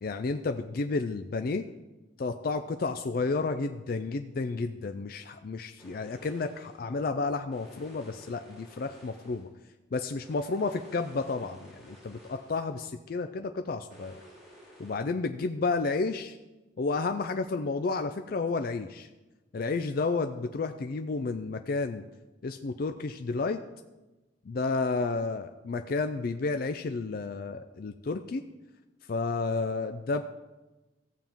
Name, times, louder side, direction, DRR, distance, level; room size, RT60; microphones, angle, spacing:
voice 1, 0.0-1.6 2.2-9.5 9.9-14.2 14.8-16.4 16.8-19.1 19.5-22.0 22.4-23.6 24.5-28.4 29.1-30.2, left 3 dB, 50° left, 8 dB, 0.4 m, -31 dB
sound 1, 5.8-6.8 7.5-9.5 10.2-12.7 13.9-15.0, equal, ahead, 3.4 m, -53 dB
14.5 x 7.4 x 3.6 m, 1.1 s
head